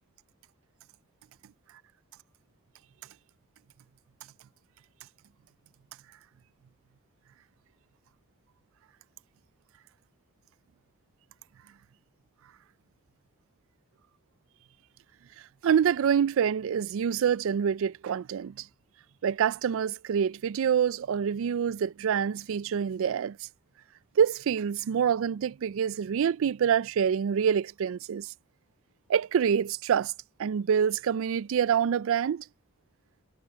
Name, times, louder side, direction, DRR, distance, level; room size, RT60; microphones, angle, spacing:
voice 1, 15.6-18.6 19.2-23.4 24.2-28.3 29.1-30.1 30.4-32.4, right 8 dB, 65° right, 0.4 m, -26 dB
head